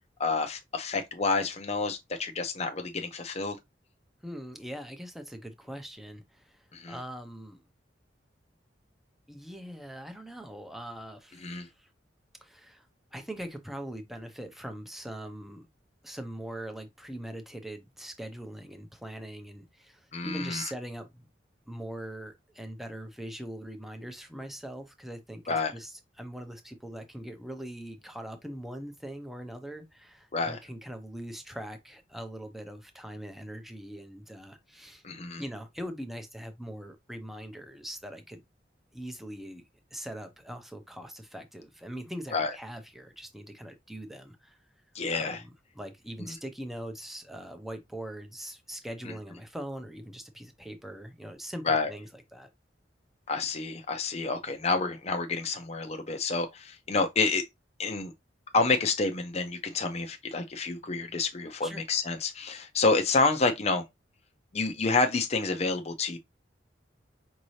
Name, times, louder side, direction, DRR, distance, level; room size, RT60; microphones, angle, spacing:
voice 1, 0.2-3.6 6.7-7.0 11.4-11.7 20.1-20.6 25.5-25.7 30.3-30.6 35.0-35.4 42.3-42.5 44.9-45.4 49.0-49.1 51.7-51.9 53.3-57.4 57.8-58.1 58.5-63.8 64.5-66.2, left 3 dB, 35° left, 0.6 m, -28 dB
voice 2, 4.2-7.6 9.3-11.9 12.4-15.7 16.0-21.3 21.7-35.0 35.4-38.4 38.9-39.6 39.9-44.6 45.1-52.5 61.6-61.8, equal, ahead, 0.7 m, -42 dB
5.2 x 2.7 x 3.2 m
head